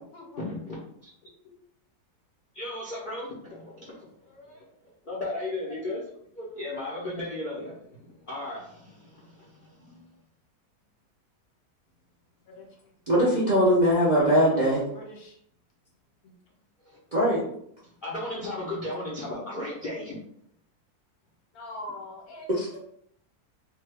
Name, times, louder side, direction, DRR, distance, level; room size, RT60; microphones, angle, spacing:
voice 1, 0.4-1.1 2.5-4.7 5.0-6.0 6.3-10.1 16.8-17.0 17.8-20.2, left 1 dB, 50° left, -7 dB, 0.6 m, -36 dB
voice 2, 13.1-14.8 17.1-17.5 22.5-22.7, equal, 45° right, -7 dB, 0.6 m, -21 dB
voice 3, 14.1-15.4 16.2-16.3 21.5-22.5, left 3 dB, 70° left, 0 dB, 1.2 m, -40 dB
2.7 x 2.2 x 3.3 m, 0.69 s
omnidirectional pair, 1.7 m